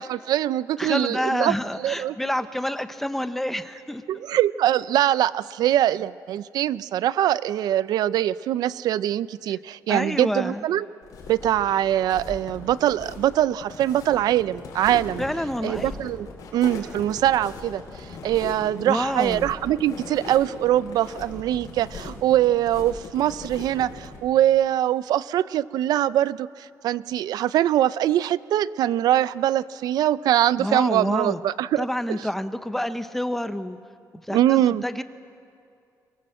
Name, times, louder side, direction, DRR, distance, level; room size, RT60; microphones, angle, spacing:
voice 1, 0.0-2.2 4.1-10.8 11.3-15.2 15.6-16.3 16.5-32.2 34.3-34.8, right 12 dB, 75° right, 17 dB, 0.5 m, -23 dB
voice 2, 0.8-4.0 9.9-10.6 15.2-15.9 18.9-19.5 30.6-31.4 31.8-33.8 34.3-35.0, left 1 dB, 5° left, 10 dB, 0.8 m, -28 dB
sound 1, 11.0-24.2, left 4 dB, 60° left, 5.2 m, -39 dB
23.5 x 21.5 x 7.7 m, 2.4 s
cardioid pair, 160°, 7 cm